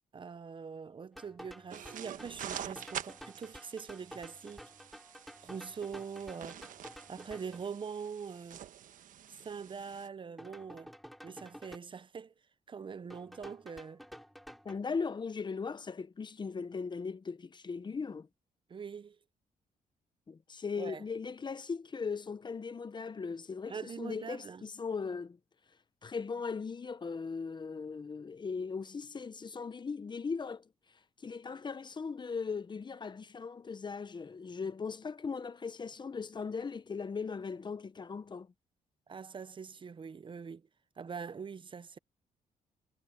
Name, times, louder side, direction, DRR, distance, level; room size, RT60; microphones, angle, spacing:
voice 1, 0.1-4.6 5.4-6.6 7.1-8.6 9.3-10.9 11.2-12.3 12.7-14.0 18.7-19.2 20.7-21.0 23.7-24.7 39.1-40.7 41.0-42.0, right 6 dB, 35° right, 0.7 m, -43 dB
sound 1, 1.2-7.7 10.4-11.8 13.1-14.8, equal, ahead, 3.5 m, -51 dB
sound 2, 1.7-10.1, right 10 dB, 70° right, 1.2 m, -47 dB
voice 2, 14.6-18.3 20.3-25.4 26.0-30.6 31.2-38.5, left 5 dB, 35° left, 0.9 m, -38 dB
cardioid pair, 90°, 14 cm